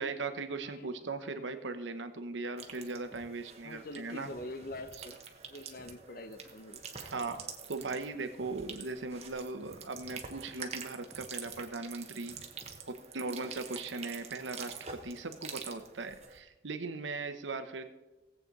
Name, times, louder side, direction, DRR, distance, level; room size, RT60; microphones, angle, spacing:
voice 1, 0.0-4.3 7.0-12.4 12.9-17.8, right 3 dB, 80° right, 9 dB, 1.0 m, -39 dB
sound 1, 2.4-3.3 3.8-3.9 4.3-5.3 5.8-6.0 6.4-6.6 6.9-7.5 7.8-8.0 8.4-8.6 9.1-9.2 9.6-10.6 11.1-11.9 12.3-12.8, equal, 10° left, 2.1 m, -57 dB
sound 2, 2.6-16.4, right 6 dB, 35° right, 1.0 m, -47 dB
voice 2, 3.6-5.1 5.5-7.0, left 1 dB, 50° left, 9 dB, 0.8 m, -45 dB
17.5 x 8.1 x 4.1 m, 1.1 s
head